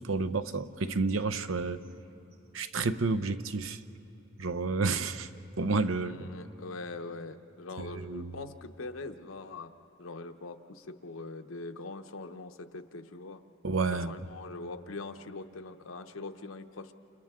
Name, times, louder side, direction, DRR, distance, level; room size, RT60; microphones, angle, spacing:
voice 1, 0.0-1.8 2.5-3.8 4.4-5.3 5.6-6.2 7.8-8.3 13.6-14.1, right 3 dB, 80° right, 11 dB, 0.8 m, -30 dB
voice 2, 5.9-9.7 10.0-13.4 13.9-16.9, left 3 dB, 90° left, 8 dB, 0.9 m, -42 dB
29.5 x 29.0 x 3.7 m, 2.9 s
head